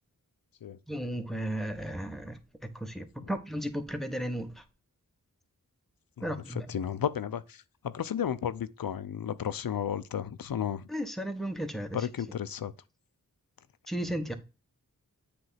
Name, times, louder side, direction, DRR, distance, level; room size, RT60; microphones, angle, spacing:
voice 1, 0.9-4.6 6.2-6.7 10.9-12.0 13.9-14.3, equal, ahead, 1.2 m, -35 dB
voice 2, 6.2-10.9 11.9-12.7, left 9 dB, 80° left, 0.6 m, -33 dB
7.9 x 3.4 x 5.7 m
wide cardioid pair, 55°, 34 cm